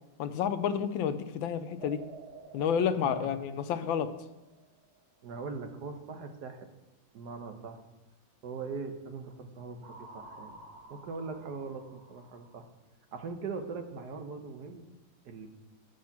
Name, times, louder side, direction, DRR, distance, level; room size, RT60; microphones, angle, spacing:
voice 1, 0.2-2.0 2.5-4.1, left 8 dB, 85° left, 11 dB, 1.4 m, -30 dB
sound 1, 1.8-5.0 9.8-12.6, right 3 dB, 40° right, 1.5 m, -51 dB
voice 2, 3.0-3.3 5.2-6.7 7.1-7.8 8.4-10.6 10.9-12.7 13.1-14.9 15.2-15.5, right 4 dB, 65° right, 6 dB, 1.4 m, -41 dB
9.3 x 6.4 x 5.8 m, 1.0 s
omnidirectional pair, 2.1 m